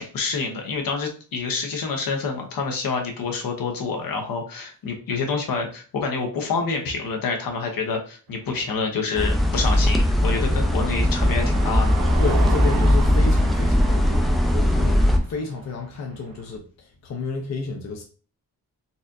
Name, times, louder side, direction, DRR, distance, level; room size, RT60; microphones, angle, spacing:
voice 1, 0.0-11.9, left 4 dB, 75° left, 2 dB, 0.9 m, -27 dB
Car passing by, 8.3-16.6, right 6 dB, 80° right, 0.6 m, -37 dB
sound 1, 9.2-15.2, left 1 dB, ahead, 0.3 m, -19 dB
voice 2, 12.2-18.0, left 4 dB, 50° left, 2 dB, 0.6 m, -31 dB
4.1 x 2.4 x 2.6 m, 0.38 s
wide cardioid pair, 155°, 35 cm